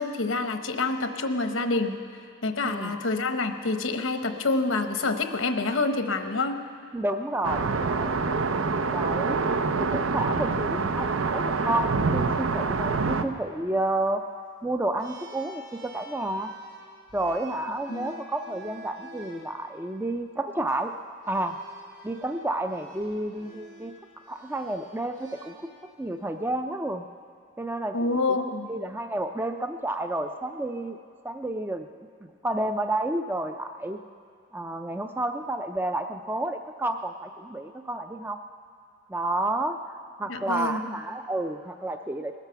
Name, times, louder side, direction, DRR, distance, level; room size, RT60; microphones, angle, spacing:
voice 1, 0.0-1.9 2.4-6.6 17.9-18.1 27.9-28.7 40.3-40.9, left 3 dB, 80° left, 7 dB, 1.0 m, -27 dB
voice 2, 2.6-2.9 6.9-8.2 8.9-9.4 9.8-14.2 14.6-16.5 17.1-20.9 21.3-21.6 22.0-23.9 24.3-25.5 26.0-27.1 27.6-28.0 28.7-31.0 31.2-31.9 32.4-34.0 34.5-38.4 39.1-39.8 40.2-42.3, right 1 dB, 10° right, 6 dB, 0.4 m, -30 dB
sound 1, 7.4-13.2, right 4 dB, 85° right, 0.7 m, -26 dB
sound 2, 15.0-19.5 20.5-20.7 21.2-26.1, right 1 dB, 60° right, 3.3 m, -50 dB
19.5 x 10.5 x 6.9 m, 2.2 s
head